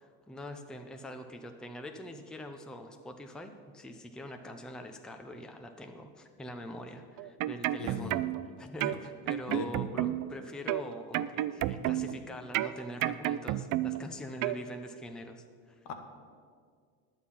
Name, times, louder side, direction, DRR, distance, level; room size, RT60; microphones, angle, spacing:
voice 1, 0.0-8.2 8.6-15.8, left 1 dB, ahead, 5 dB, 0.6 m, -44 dB
sound 1, 7.2-8.5 8.8-10.3 10.7-12.2 12.5-14.1 14.4-14.6, right 14 dB, 50° right, 0.5 m, -31 dB
voice 2, 7.8-8.1 9.5-9.7 15.8-15.9, left 5 dB, 70° left, 5 dB, 1.5 m, -37 dB
10.5 x 8.2 x 5.7 m, 2.1 s
supercardioid pair, 100°, 43 cm